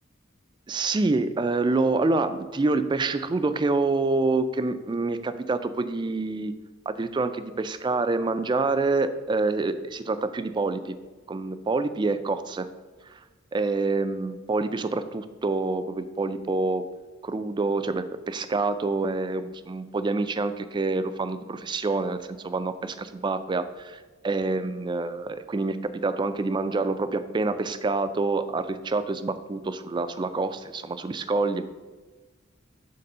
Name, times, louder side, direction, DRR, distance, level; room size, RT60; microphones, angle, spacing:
voice 1, 0.7-6.5 6.9-11.0 11.3-12.7 13.5-16.8 17.2-24.0 24.2-31.6, right 3 dB, 25° right, 12 dB, 0.3 m, -27 dB
6.6 x 3.7 x 5.4 m, 1.3 s
head